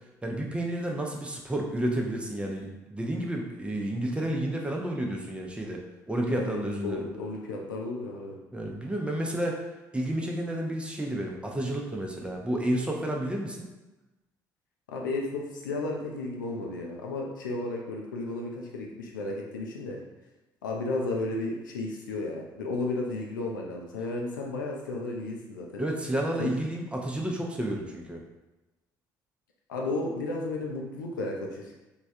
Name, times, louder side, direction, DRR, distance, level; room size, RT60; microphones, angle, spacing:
voice 1, 0.2-7.1 8.5-9.6 9.9-13.7 25.8-28.2, right 1 dB, 10° right, 0 dB, 0.5 m, -31 dB
voice 2, 6.3-8.4 14.9-20.0 20.6-25.8 26.4-26.5 29.7-31.7, left 2 dB, 75° left, 0 dB, 0.4 m, -33 dB
3.2 x 2.2 x 2.6 m, 1.1 s
figure-of-eight pair, 50°, 11 cm